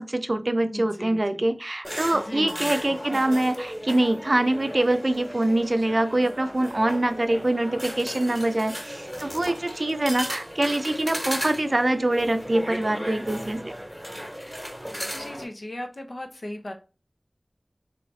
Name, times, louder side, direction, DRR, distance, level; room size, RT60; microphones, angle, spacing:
voice 1, 0.0-13.7, right 1 dB, 55° right, 9 dB, 0.5 m, -24 dB
voice 2, 0.7-1.4 2.1-2.8 3.1-3.2 15.1-16.7, left 1 dB, 70° left, 3 dB, 0.8 m, -37 dB
sound 1, 1.8-15.4, equal, 5° left, 1.4 m, -35 dB
3.2 x 3.1 x 4.0 m, 0.34 s
wide cardioid pair, 50°, 0 cm